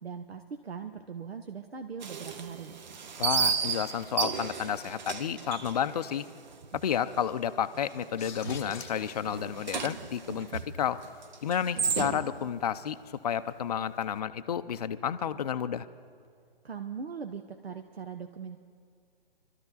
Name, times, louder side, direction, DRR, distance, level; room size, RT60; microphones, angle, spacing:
voice 1, 0.0-2.7 16.6-18.6, right 6 dB, 80° right, 6 dB, 1.0 m, -40 dB
sound 1, 2.0-6.9 7.2-7.3 7.7-8.1 8.4-12.5, right 6 dB, 50° right, 0.9 m, -33 dB
voice 2, 3.2-6.3 6.7-11.0 11.4-13.0 13.2-15.9, left 8 dB, 40° left, 10 dB, 0.5 m, -31 dB
sound 2, 8.1-11.9, left 6 dB, 10° left, 0.9 m, -49 dB
24.0 x 13.0 x 4.0 m, 2.2 s
figure-of-eight pair, 145°, 30 cm